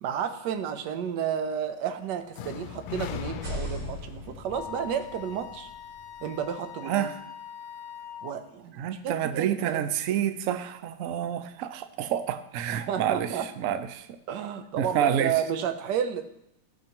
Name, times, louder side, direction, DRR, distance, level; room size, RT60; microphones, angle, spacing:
voice 1, 0.0-5.7 6.2-7.1 8.2-9.8 12.7-13.5 14.3-16.2, right 8 dB, 70° right, 8 dB, 1.3 m, -31 dB
sound 1, 2.3-6.3, left 9 dB, 90° left, 1.4 m, -40 dB
sound 2, 3.3-7.1, equal, 50° right, 3.7 m, -41 dB
Wind instrument woodwind instrument, 4.5-8.4, left 8 dB, 70° left, 1.4 m, -42 dB
voice 2, 8.8-14.1 14.8-15.3, right 10 dB, 90° right, 10 dB, 0.7 m, -28 dB
14.5 x 5.5 x 2.9 m, 0.79 s
omnidirectional pair, 2.1 m